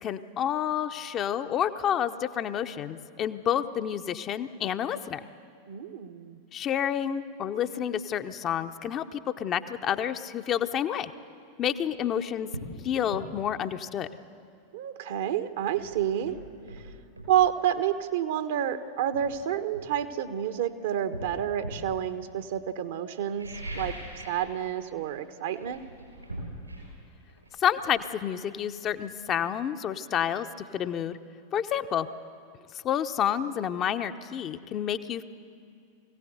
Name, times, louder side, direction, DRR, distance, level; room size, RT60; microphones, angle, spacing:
voice 1, 0.0-5.2 6.5-11.1 11.6-12.5 12.8-14.1 27.6-30.5 30.7-31.2 31.5-32.1 32.8-35.2, left 9 dB, 30° left, 8 dB, 0.8 m, -29 dB
voice 2, 5.7-6.4 14.7-16.4 17.3-23.9 24.3-25.8, right 10 dB, 55° right, 10 dB, 1.1 m, -29 dB
sound 1, 11.7-11.9 12.5-12.8 13.1-13.3 15.2-15.3 15.7-17.4 18.5-18.6 19.1-20.5 21.1-21.9 23.2-24.5 24.8-25.1 25.4-29.0 29.3-29.4, right 1 dB, 80° right, 6.5 m, -41 dB
23.0 x 16.5 x 8.0 m, 2.3 s
figure-of-eight pair, 90°, 0 cm